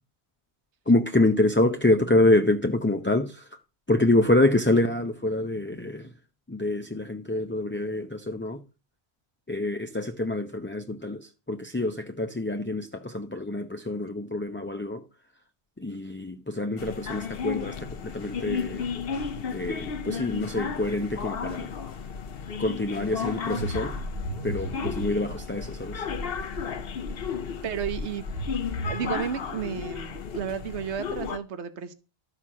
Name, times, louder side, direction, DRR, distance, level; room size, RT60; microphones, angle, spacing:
voice 1, 0.9-3.4 3.9-6.1 6.5-8.6 9.5-15.0 15.8-18.8 19.5-21.7 22.6-23.9 24.4-26.0, left 2 dB, 15° left, 0.6 m, -26 dB
sound 1, 16.8-31.4, left 6 dB, 60° left, 1.0 m, -34 dB
sound 2, 23.5-25.4 25.7-25.8 26.1-26.6 27.0-29.1, equal, 60° right, 2.9 m, -34 dB
voice 2, 27.6-28.3 28.8-31.9, right 8 dB, 85° right, 1.3 m, -32 dB
13.0 x 5.9 x 7.4 m
omnidirectional pair, 1.1 m